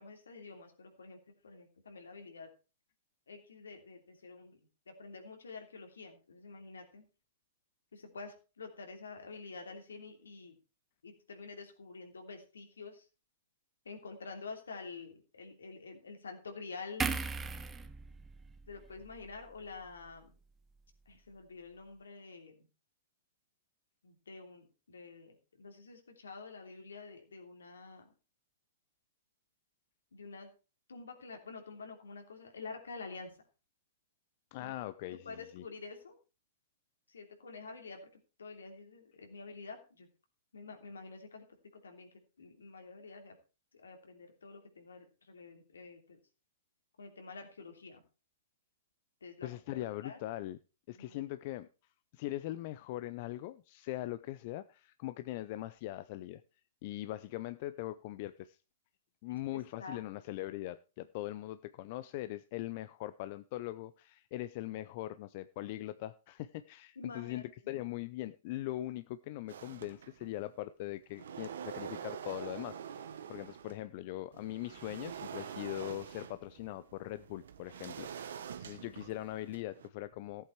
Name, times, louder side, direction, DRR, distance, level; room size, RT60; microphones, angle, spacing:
voice 1, 0.0-2.5 3.3-4.6 4.9-7.1 7.9-10.6 11.0-13.0 13.8-17.1 18.7-20.3 21.1-22.6 24.0-28.1 30.1-30.5 30.9-33.3 34.6-34.7 35.2-36.2 37.1-38.1 38.4-40.1 40.5-41.4 41.7-43.3 43.7-46.2 47.0-48.0 49.2-49.5 50.0-50.2 50.9-51.2 59.5-60.0 66.9-68.0, left 4 dB, 80° left, 5 dB, 3.0 m, -48 dB
sound 1, 17.0-20.4 20.7-20.9, right 5 dB, 15° right, 1.1 m, -40 dB
voice 2, 34.5-35.6 49.4-50.6 50.9-51.7 52.1-56.4 56.8-58.6 59.2-72.8 73.3-80.5, left 15 dB, 50° left, 14 dB, 0.5 m, -41 dB
sound 2, 69.5-70.5 70.9-73.8 74.3-79.9, right 8 dB, 70° right, 1.1 m, -46 dB
14.5 x 8.2 x 4.5 m, 0.33 s
hypercardioid pair, 115°, 0 cm